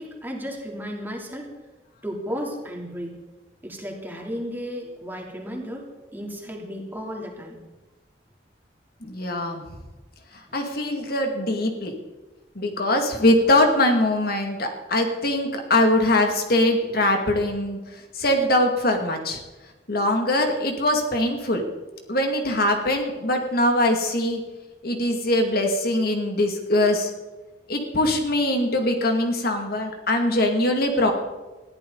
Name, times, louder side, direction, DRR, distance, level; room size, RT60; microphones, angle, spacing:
voice 1, 0.0-1.6 2.0-3.2 3.6-7.6, equal, 10° right, -1 dB, 3.0 m, -34 dB
voice 2, 9.0-9.6 10.3-11.9 12.6-19.4 19.9-21.6 22.1-24.4 24.8-27.1 27.7-31.1, left 1 dB, 60° left, 3 dB, 2.2 m, -22 dB
21.0 x 14.5 x 4.0 m, 1.1 s
head